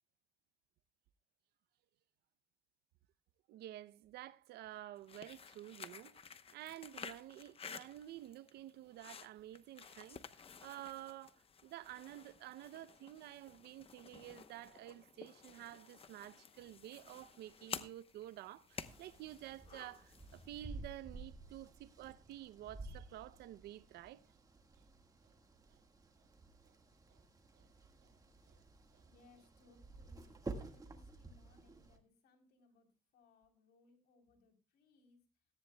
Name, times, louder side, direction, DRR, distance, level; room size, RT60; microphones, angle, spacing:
voice 1, 3.5-24.2 25.7-25.8 27.1-27.2 27.6-27.7 28.0-28.1 28.5-28.6 28.9-29.0, right 14 dB, 75° right, 0.7 m, -51 dB
sound 1, 5.0-20.6, left 6 dB, 35° left, 0.9 m, -53 dB
sound 2, 18.8-32.0, right 3 dB, 20° right, 1.6 m, -52 dB
voice 2, 29.1-35.5, left 2 dB, 75° left, 3.6 m, -68 dB
18.0 x 14.0 x 2.2 m
cardioid pair, 110°, 17 cm